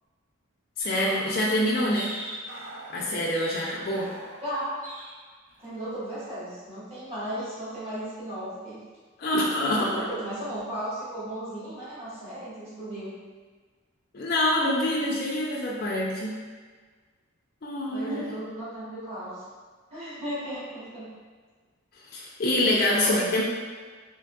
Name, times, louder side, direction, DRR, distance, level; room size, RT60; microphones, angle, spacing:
voice 1, 0.8-2.1 2.9-4.1 9.2-10.0 14.1-16.4 17.6-18.2 22.1-23.4, left 1 dB, 45° left, -4 dB, 0.4 m, -25 dB
sound 1, 0.8-4.6 4.8-5.2 5.5-5.7, right 2 dB, 65° right, 0.5 m, -41 dB
voice 2, 1.5-2.1 4.4-4.7 5.6-8.8 9.8-13.1 17.9-19.4 19.9-21.1 22.6-23.3, right 1 dB, 30° right, -12 dB, 1.4 m, -35 dB
3.5 x 3.1 x 2.3 m, 1.5 s
head